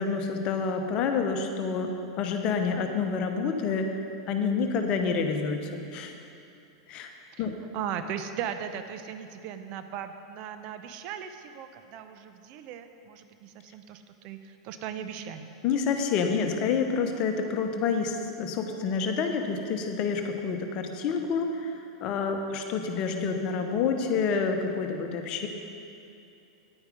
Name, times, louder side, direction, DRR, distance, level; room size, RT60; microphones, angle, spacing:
voice 1, 0.0-4.0 4.3-6.1 6.9-7.1 7.4-7.5 15.6-25.5, left 5 dB, 40° left, 5 dB, 1.0 m, -28 dB
voice 2, 7.7-15.5, right 8 dB, 45° right, 9 dB, 0.7 m, -38 dB
9.9 x 9.4 x 5.2 m, 2.7 s
figure-of-eight pair, 90°, 2 cm